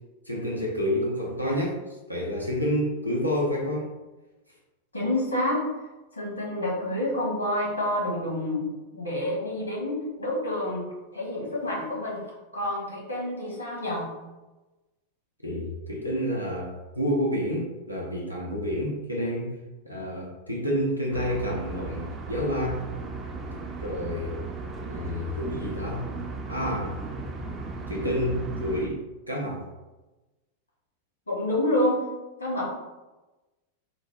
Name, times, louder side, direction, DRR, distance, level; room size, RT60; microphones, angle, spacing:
voice 1, 0.3-3.9 15.4-19.6 19.8-22.8 23.5-24.4 24.9-26.1 26.5-26.9 27.9-29.0 29.3-29.7, equal, 90° right, -2 dB, 0.6 m, -29 dB
voice 2, 4.9-5.6 6.1-8.7 8.9-10.9 11.1-12.2 12.5-14.1 31.3-32.0 32.4-32.7, left 1 dB, 80° left, -4 dB, 1.1 m, -28 dB
sound 1, 21.1-28.9, right 3 dB, 25° right, 0.4 m, -36 dB
4.0 x 2.1 x 3.0 m, 1.1 s
figure-of-eight pair, 90°, 0 cm